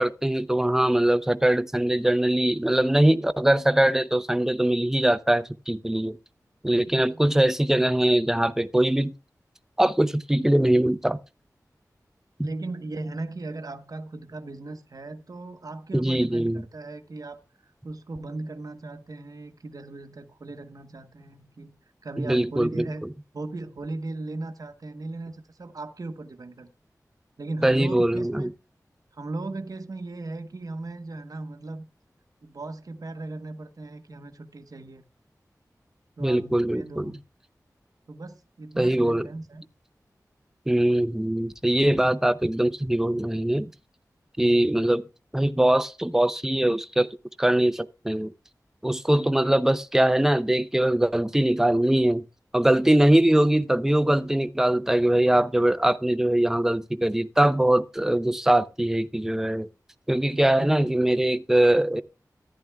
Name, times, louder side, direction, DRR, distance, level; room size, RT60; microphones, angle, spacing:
voice 1, 0.0-6.2 6.6-9.1 9.8-11.2 15.9-16.6 22.2-22.9 27.6-28.5 36.2-37.1 38.8-39.3 40.7-43.7 44.4-45.0 45.3-47.1 47.4-48.3 48.8-52.2 52.5-59.7 60.1-62.0, right 1 dB, 5° right, 0.6 m, -22 dB
voice 2, 6.9-7.4 12.4-17.4 17.8-21.7 22.0-23.1 23.3-26.7 27.4-28.5 29.1-31.8 32.4-35.0 36.2-37.2 38.1-39.6 60.4-60.9, right 2 dB, 65° right, 1.0 m, -37 dB
14.0 x 10.0 x 2.3 m
wide cardioid pair, 65°, 7 cm